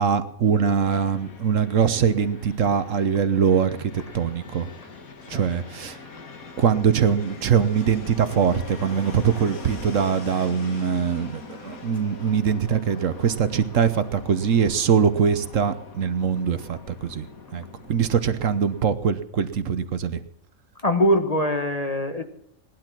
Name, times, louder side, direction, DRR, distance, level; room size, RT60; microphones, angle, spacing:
voice 1, 0.0-4.7 5.3-6.0 6.6-17.3 17.5-20.2, right 7 dB, 65° right, 12 dB, 1.3 m, -22 dB
Fixed-wing aircraft airplane, 0.8-18.8, left 4 dB, 85° left, 2.3 m, -42 dB
voice 2, 20.8-22.2, equal, 30° left, 7 dB, 1.2 m, -22 dB
18.0 x 11.5 x 6.0 m, 0.72 s
omnidirectional pair, 1.4 m